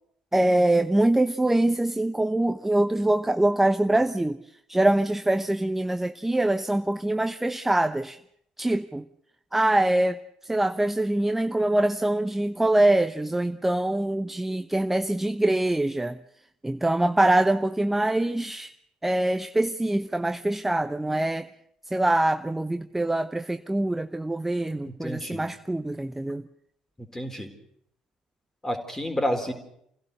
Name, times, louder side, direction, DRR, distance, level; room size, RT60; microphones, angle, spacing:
voice 1, 0.3-4.4 4.7-8.2 8.6-9.1 9.5-16.2 16.6-18.7 19.0-21.5 21.9-26.5, right 1 dB, 10° right, 10 dB, 0.8 m, -24 dB
voice 2, 24.9-25.5 27.0-27.5 28.6-29.5, equal, 15° left, 5 dB, 4.0 m, -30 dB
27.5 x 16.5 x 6.7 m, 0.73 s
figure-of-eight pair, 50°, 3 cm